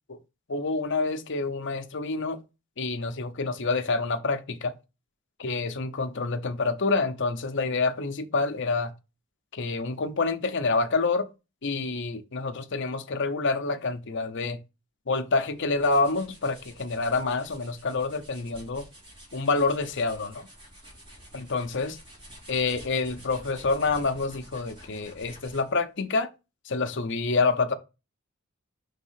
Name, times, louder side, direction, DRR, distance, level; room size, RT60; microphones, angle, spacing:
voice 1, 0.5-2.4 2.8-4.7 5.4-8.9 9.5-11.3 11.6-14.6 15.1-18.9 19.3-20.5 21.3-22.0 22.5-26.3 26.7-27.7, left 3 dB, 60° left, 0.8 m, -27 dB
sound 1, 15.4-25.8, equal, 25° right, 2.7 m, -49 dB
5.4 x 3.7 x 5.7 m
head